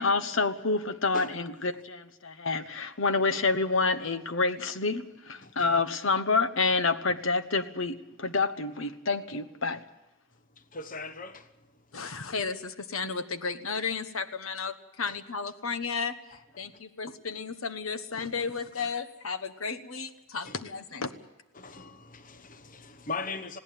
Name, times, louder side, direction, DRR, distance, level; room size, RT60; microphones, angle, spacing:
voice 1, 0.0-9.8, left 3 dB, 70° left, 1.2 m, -28 dB
voice 2, 5.4-5.8 10.6-11.5 15.1-15.2 16.6-16.7 18.8-18.9 20.4-20.6 21.5-23.6, left 3 dB, 40° left, 1.1 m, -39 dB
voice 3, 11.9-21.1, left 5 dB, 85° left, 1.3 m, -34 dB
20.5 x 17.0 x 8.6 m
head